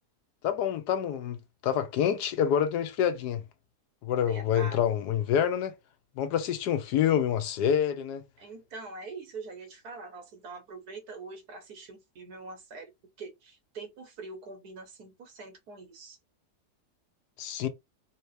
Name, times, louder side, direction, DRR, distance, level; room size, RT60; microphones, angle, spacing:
voice 1, 0.4-1.4 1.6-3.4 4.0-5.7 6.2-8.2 17.4-17.7, left 9 dB, 90° left, 1.3 m, -27 dB
voice 2, 4.3-4.8 8.4-12.9 13.2-16.2, right 3 dB, 75° right, 1.6 m, -44 dB
3.7 x 2.8 x 3.2 m
omnidirectional pair, 1.7 m